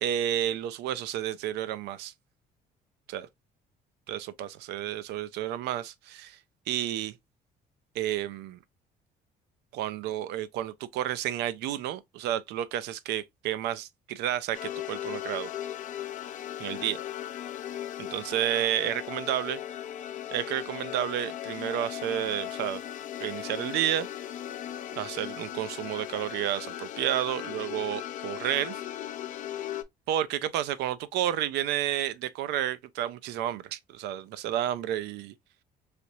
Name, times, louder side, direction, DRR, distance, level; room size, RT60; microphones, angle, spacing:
voice 1, 0.0-2.1 3.1-3.3 4.1-6.4 6.7-7.1 8.0-8.6 9.7-15.5 16.6-17.0 18.0-19.6 20.3-22.8 23.2-24.1 25.0-28.8 30.1-35.3, right 11 dB, 80° right, 0.5 m, -31 dB
sound 1, 14.5-29.8, left 11 dB, 50° left, 0.4 m, -37 dB
3.3 x 2.9 x 2.6 m
cardioid pair, 110°, 17 cm